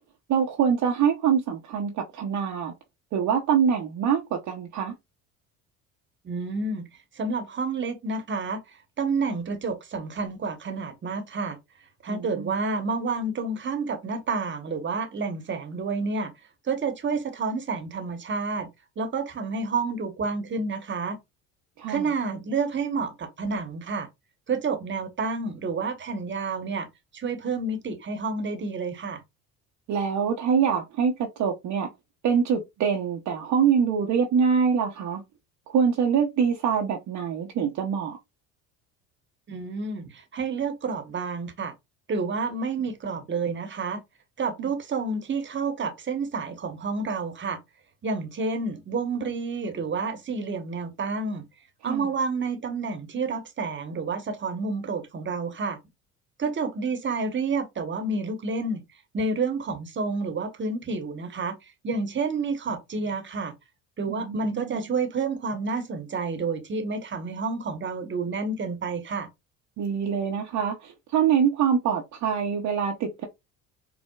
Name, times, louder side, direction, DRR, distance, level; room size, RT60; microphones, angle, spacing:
voice 1, 0.3-2.7 3.1-4.9 12.1-12.5 21.8-22.1 29.9-31.9 32.2-35.2 35.7-38.2 44.6-44.7 51.8-52.1 64.1-64.8 69.8-73.2, right 7 dB, 45° right, 0.7 m, -24 dB
voice 2, 6.2-6.9 7.1-11.6 12.0-16.3 16.6-18.7 19.0-21.2 21.9-24.1 24.5-26.9 27.1-29.2 39.5-41.7 42.1-44.0 44.4-47.6 48.0-51.4 51.8-55.8 56.4-58.8 59.1-63.5 64.0-69.3, right 4 dB, 25° right, 0.9 m, -29 dB
4.5 x 2.0 x 2.3 m
hypercardioid pair, 65°, 42 cm